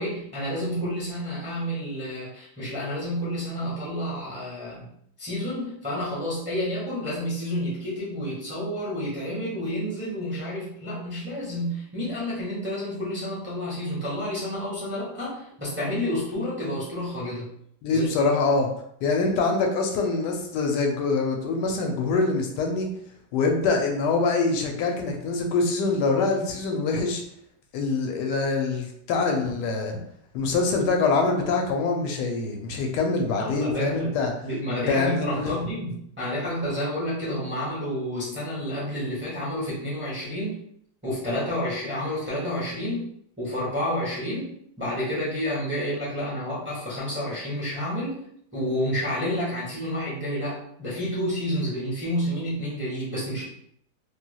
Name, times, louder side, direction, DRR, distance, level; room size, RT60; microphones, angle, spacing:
voice 1, 0.0-4.9 5.2-17.5 17.9-18.3 33.4-34.1 34.4-40.6 41.0-48.2 48.5-53.4, equal, 10° right, -7 dB, 0.6 m, -30 dB
voice 2, 17.8-18.7 19.0-22.9 23.3-27.2 27.7-30.0 30.3-34.3 34.9-35.5, left 3 dB, 85° left, 2 dB, 1.2 m, -24 dB
3.2 x 2.6 x 2.2 m, 0.69 s
omnidirectional pair, 1.8 m